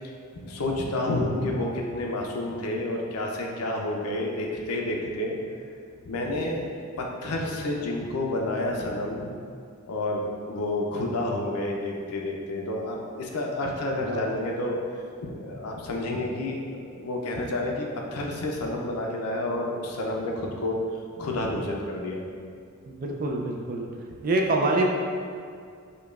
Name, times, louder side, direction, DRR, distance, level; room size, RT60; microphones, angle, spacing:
voice 1, 0.3-5.4 6.1-6.7 7.0-9.3 9.9-14.8 15.2-20.8 21.2-22.2, left 1 dB, 85° left, 0 dB, 0.5 m, -29 dB
voice 2, 22.9-23.9 24.2-24.9, right 2 dB, 40° right, 1 dB, 0.3 m, -25 dB
5.1 x 2.2 x 2.3 m, 2.2 s
head